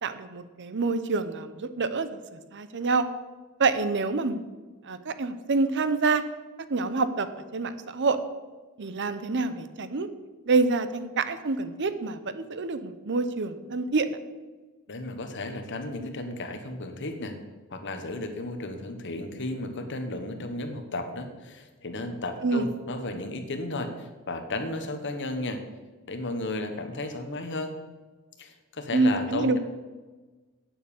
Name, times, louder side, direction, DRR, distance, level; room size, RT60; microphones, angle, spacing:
voice 1, 0.0-3.0 3.6-4.4 4.8-6.2 6.7-7.3 7.5-8.2 8.8-10.1 10.5-14.2 22.4-22.7 28.9-29.6, right 3 dB, 55° right, 12 dB, 0.8 m, -27 dB
voice 2, 14.9-17.3 17.7-25.6 26.1-27.7 28.4-29.6, left 2 dB, 55° left, 7 dB, 1.4 m, -34 dB
9.2 x 7.8 x 7.1 m, 1.3 s
head